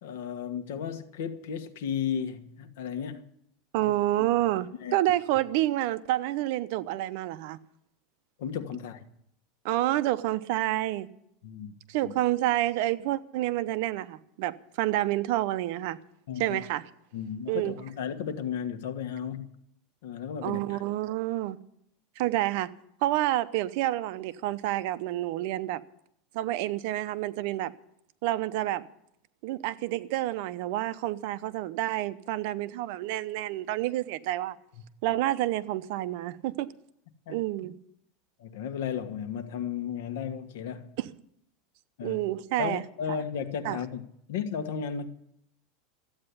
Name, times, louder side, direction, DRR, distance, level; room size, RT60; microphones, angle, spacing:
voice 1, 0.0-3.2 3.8-3.9 4.8-4.9 8.4-9.1 11.4-12.1 16.3-16.6 17.1-19.5 20.0-20.8 37.3-37.4 38.4-41.0 42.0-42.2 42.6-45.1, left 7 dB, 75° left, 1.5 m, -34 dB
voice 2, 3.7-7.6 9.6-11.1 11.9-16.0 16.4-16.8 17.5-17.7 20.4-21.6 22.2-22.7 23.0-25.8 26.3-27.7 28.2-28.9 29.4-34.6 35.0-36.7 37.3-37.7 41.0-41.1 42.0-42.8 43.6-43.8, right 15 dB, 55° right, 0.7 m, -28 dB
14.0 x 8.8 x 9.9 m
supercardioid pair, 165°, 0 cm